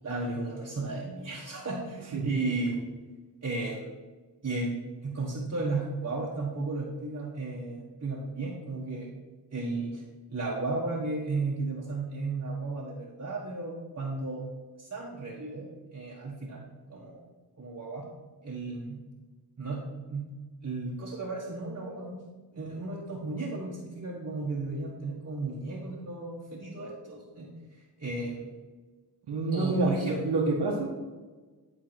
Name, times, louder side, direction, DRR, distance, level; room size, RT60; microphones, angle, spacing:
voice 1, 0.0-2.8 3.4-3.9 4.4-4.7 5.0-9.1 9.5-10.0 10.3-14.4 14.8-17.2 17.6-18.1 18.4-19.0 19.6-19.8 20.1-20.3 20.6-22.2 22.5-28.5 29.5-30.2, right 3 dB, 40° right, -4 dB, 1.6 m, -34 dB
voice 2, 29.3-31.1, right 2 dB, 85° right, -4 dB, 1.6 m, -28 dB
12.0 x 4.0 x 5.9 m, 1.3 s
cardioid pair, 85°, 39 cm